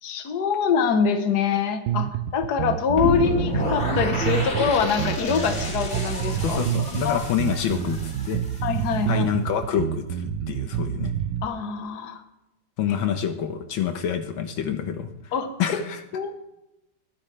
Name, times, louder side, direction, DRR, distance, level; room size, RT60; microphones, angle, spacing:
voice 1, 0.0-6.6 7.0-7.2 8.6-9.3 11.4-12.2 15.3-15.8 16.1-16.3, left 6 dB, 55° left, 8 dB, 1.6 m, -24 dB
sound 1, 1.9-11.5, right 10 dB, 80° right, 1.5 m, -28 dB
sound 2, 3.0-9.0, left 1 dB, 35° left, 2.7 m, -30 dB
voice 2, 6.4-8.4 9.1-11.1 12.8-15.1 15.6-16.0, left 8 dB, 80° left, 7 dB, 1.8 m, -27 dB
20.5 x 10.5 x 3.4 m, 0.92 s
omnidirectional pair, 2.2 m